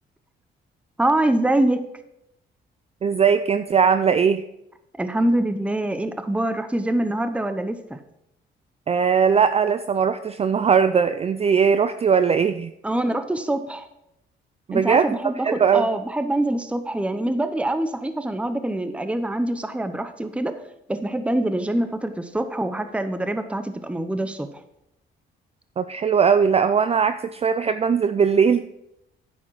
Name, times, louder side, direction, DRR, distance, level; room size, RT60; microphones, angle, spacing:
voice 1, 1.0-1.8 5.0-8.0 12.8-13.9 14.7-20.6 20.9-24.5, right 1 dB, 5° right, 9 dB, 0.8 m, -24 dB
voice 2, 3.0-4.4 8.9-12.7 14.7-15.2 15.4-15.9 25.8-28.7, right 6 dB, 30° right, 11 dB, 0.4 m, -19 dB
9.8 x 7.2 x 4.7 m, 0.82 s
cardioid pair, 90°, 20 cm